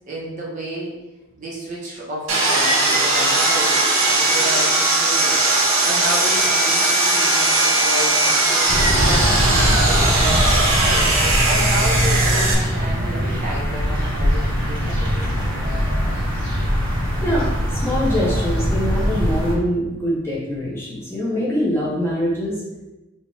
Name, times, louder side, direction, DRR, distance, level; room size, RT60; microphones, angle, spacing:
voice 1, 0.1-0.9 1.4-15.4, equal, 40° right, -5 dB, 0.9 m, -31 dB
Sawing, 2.3-12.5, right 2 dB, 80° right, 0.9 m, -18 dB
sound 1, 8.7-19.5, equal, 60° right, 1.3 m, -21 dB
voice 2, 17.2-22.6, equal, 10° left, -6 dB, 0.9 m, -23 dB
4.1 x 2.3 x 3.4 m, 1.0 s
head